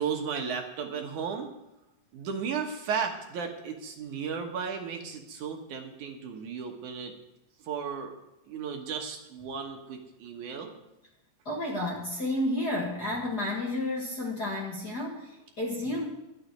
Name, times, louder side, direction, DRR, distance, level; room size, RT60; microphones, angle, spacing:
voice 1, 0.0-1.5 2.1-7.1 7.6-8.1 8.5-10.7, right 6 dB, 70° right, 3 dB, 2.6 m, -34 dB
voice 2, 11.5-16.0, left 1 dB, 35° left, -3 dB, 1.8 m, -31 dB
12.0 x 6.4 x 9.4 m, 0.91 s
omnidirectional pair, 3.9 m